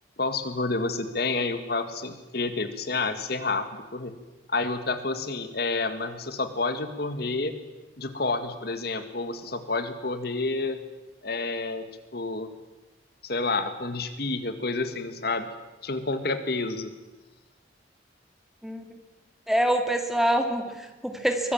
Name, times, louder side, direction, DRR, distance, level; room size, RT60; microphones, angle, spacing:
voice 1, 0.2-3.7 3.9-4.1 4.5-7.5 8.0-10.8 11.2-11.9 12.1-12.5 13.2-15.5 15.8-16.9, left 3 dB, 55° left, 9 dB, 1.9 m, -29 dB
voice 2, 19.5-21.5, right 1 dB, ahead, 5 dB, 2.3 m, -25 dB
23.5 x 21.0 x 8.9 m, 1.1 s
head